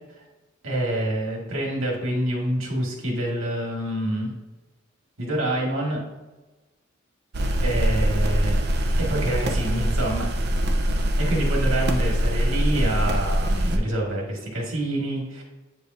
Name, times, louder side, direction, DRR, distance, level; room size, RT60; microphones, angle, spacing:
voice 1, 0.6-4.3 5.2-6.0 7.6-8.6 9.0-10.3 11.2-15.4, right 1 dB, 75° right, -1 dB, 1.9 m, -27 dB
sound 1, 7.3-13.8, equal, 55° right, 0.7 m, -23 dB
8.5 x 4.9 x 2.6 m, 1.1 s
head